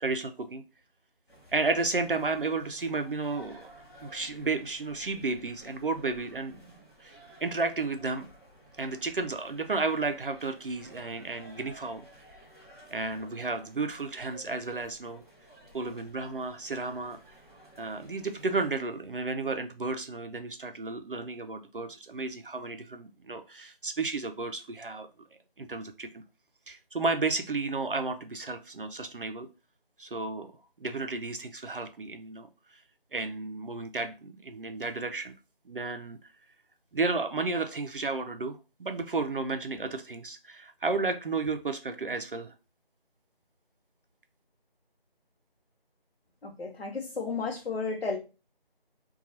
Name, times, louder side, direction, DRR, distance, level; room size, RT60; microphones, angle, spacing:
voice 1, 0.0-0.6 1.5-3.7 4.0-6.6 7.0-8.3 8.8-12.3 12.9-15.2 15.7-17.2 17.8-25.1 25.6-26.2 26.7-29.5 30.0-30.5 30.8-32.8 33.1-35.3 35.7-36.2 36.9-42.5, right 3 dB, 60° right, 0.4 m, -32 dB
sound 1, 1.3-18.8, right 1 dB, 25° left, 1.1 m, -54 dB
voice 2, 46.4-48.2, left 4 dB, 75° left, 0.7 m, -33 dB
2.8 x 2.3 x 4.0 m
figure-of-eight pair, 175°, 30 cm